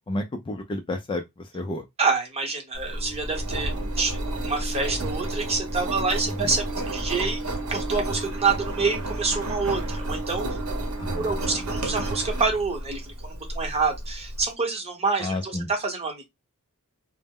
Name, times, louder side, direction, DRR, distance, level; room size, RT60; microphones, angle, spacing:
voice 1, 0.1-1.8 6.4-6.5 11.0-11.6 15.2-15.7, left 1 dB, 20° left, 0.3 m, -31 dB
voice 2, 2.0-10.4 11.1-16.2, right 4 dB, 30° right, 0.8 m, -27 dB
Engine, 2.7-14.4, right 1 dB, 85° right, 0.8 m, -31 dB
2.0 x 2.0 x 3.5 m
head